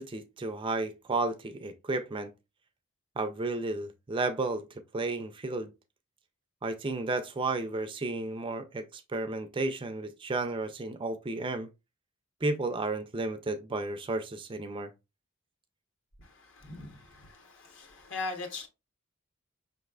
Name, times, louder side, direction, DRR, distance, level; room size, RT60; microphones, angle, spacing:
voice 1, 0.0-2.3 3.2-4.7 4.9-5.7 6.6-11.7 12.4-14.9, right 2 dB, 25° right, 0.4 m, -32 dB
voice 2, 16.2-18.7, left 3 dB, 60° left, 1.2 m, -40 dB
5.3 x 3.2 x 2.3 m
head